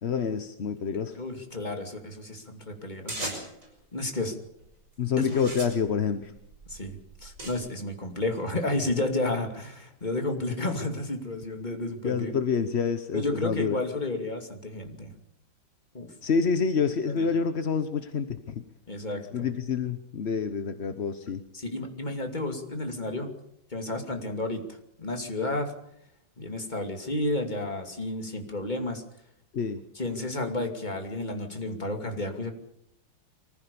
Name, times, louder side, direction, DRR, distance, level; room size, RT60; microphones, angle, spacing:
voice 1, 0.0-1.2 5.0-6.3 12.0-13.8 16.2-18.6 19.3-21.4 29.5-29.8, left 6 dB, 45° left, 9 dB, 0.8 m, -27 dB
voice 2, 1.1-3.3 3.9-4.4 5.2-5.4 6.7-12.3 13.1-15.1 15.9-16.1 17.1-17.3 18.9-19.5 21.5-23.3 23.7-25.7 26.4-29.0 29.9-32.5, left 2 dB, 20° left, 4 dB, 2.7 m, -31 dB
metal sign on metal stand, 3.1-3.7 4.5-4.8 5.2-7.5, right 1 dB, 40° right, 6.2 m, -38 dB
24.5 x 15.5 x 7.0 m, 0.78 s
omnidirectional pair, 2.2 m